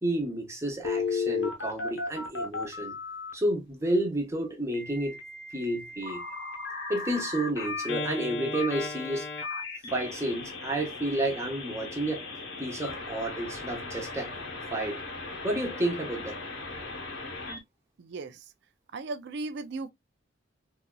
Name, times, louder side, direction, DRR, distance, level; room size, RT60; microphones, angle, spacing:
voice 1, 0.0-3.0 3.3-5.2 5.5-6.2 6.9-9.3 9.9-12.2 12.6-14.3 14.7-15.0 15.4-16.4, right 1 dB, 15° right, 1.1 m, -30 dB
Telephone, 0.8-3.3 4.7-17.6, left 4 dB, 80° left, 1.2 m, -36 dB
voice 2, 18.9-19.9, right 3 dB, 60° right, 0.4 m, -35 dB
4.1 x 2.7 x 2.2 m
head